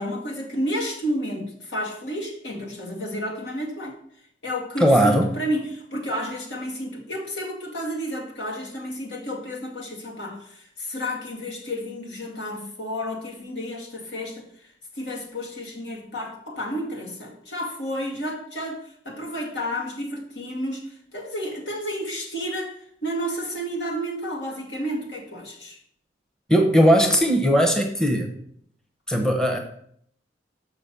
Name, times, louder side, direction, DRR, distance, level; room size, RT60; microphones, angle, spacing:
voice 1, 0.0-4.0 4.4-25.8, equal, 75° left, 0 dB, 2.2 m, -31 dB
voice 2, 4.8-5.4 26.5-28.3 29.1-29.6, equal, 5° left, 3 dB, 0.9 m, -18 dB
6.2 x 5.8 x 6.7 m, 0.66 s
head